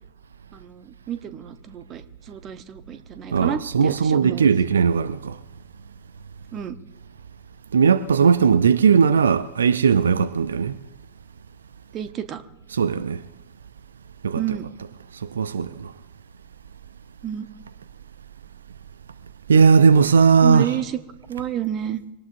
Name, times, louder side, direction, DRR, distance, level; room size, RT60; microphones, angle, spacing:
voice 1, 0.5-4.5 6.5-6.8 11.9-12.4 14.3-14.7 17.2-17.5 20.4-21.0 21.3-22.0, right 10 dB, 30° right, 1.0 m, -30 dB
voice 2, 3.3-5.4 7.7-10.8 12.7-13.2 14.2-14.4 15.1-15.9 19.5-20.8, right 6 dB, 70° right, 0.5 m, -18 dB
23.5 x 18.5 x 2.6 m
figure-of-eight pair, 90°, 0 cm